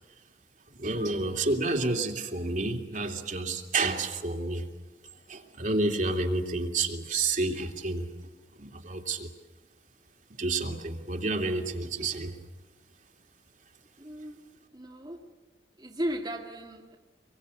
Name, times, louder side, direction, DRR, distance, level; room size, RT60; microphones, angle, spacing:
voice 1, 0.8-4.7 5.3-8.1 8.5-9.3 10.4-12.4, right 3 dB, 45° right, 2 dB, 2.8 m, -30 dB
voice 2, 14.0-14.4 14.7-15.3 15.8-17.0, equal, 25° right, -2 dB, 2.1 m, -35 dB
26.5 x 23.5 x 8.4 m, 1.2 s
head